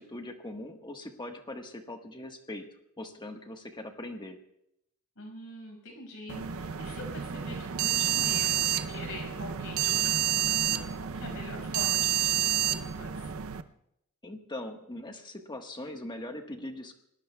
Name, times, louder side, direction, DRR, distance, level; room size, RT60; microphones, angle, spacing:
voice 1, 0.0-2.7 3.0-4.4 14.2-16.9, left 1 dB, 20° left, 4 dB, 1.3 m, -41 dB
voice 2, 5.2-13.3, left 2 dB, 70° left, 2 dB, 5.7 m, -44 dB
sound 1, 6.3-13.6, right 10 dB, 65° right, 0.6 m, -29 dB
27.5 x 19.0 x 2.3 m, 0.79 s
head